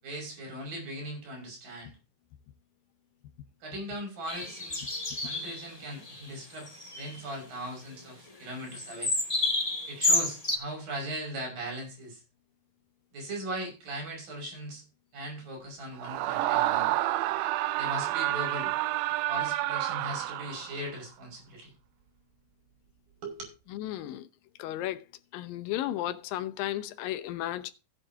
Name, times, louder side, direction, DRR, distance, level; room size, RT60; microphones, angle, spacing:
voice 1, 0.0-1.9 3.6-4.8 5.2-9.1 9.9-12.2 13.1-14.8 15.1-16.9 17.8-18.7 19.3-21.7 23.2-23.5, right 1 dB, 55° right, 7.5 m, -39 dB
sound 1, 4.3-5.7 6.0-6.2 6.5-7.2 8.7-10.6, left 2 dB, 30° left, 0.6 m, -30 dB
Screaming, 16.0-20.9, right 16 dB, 85° right, 2.8 m, -29 dB
voice 2, 23.7-24.3 24.6-25.0 25.3-27.7, left 13 dB, 75° left, 2.3 m, -34 dB
15.0 x 9.9 x 2.8 m
omnidirectional pair, 4.8 m